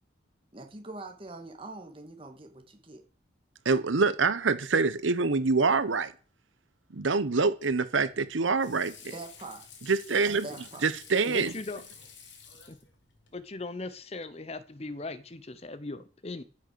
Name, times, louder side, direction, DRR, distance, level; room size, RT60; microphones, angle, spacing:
voice 1, 0.5-3.0 9.1-9.6 10.4-10.9, right 2 dB, 30° right, 2.3 m, -43 dB
voice 2, 3.6-6.1 6.9-8.9 9.9-10.5 10.8-11.5, right 4 dB, 90° right, 0.9 m, -25 dB
Water / Sink (filling or washing), 7.9-13.4, left 6 dB, 75° left, 2.9 m, -51 dB
voice 3, 11.3-11.8 12.7-12.8 13.3-16.4, left 2 dB, 30° left, 0.8 m, -39 dB
15.0 x 6.5 x 6.8 m
head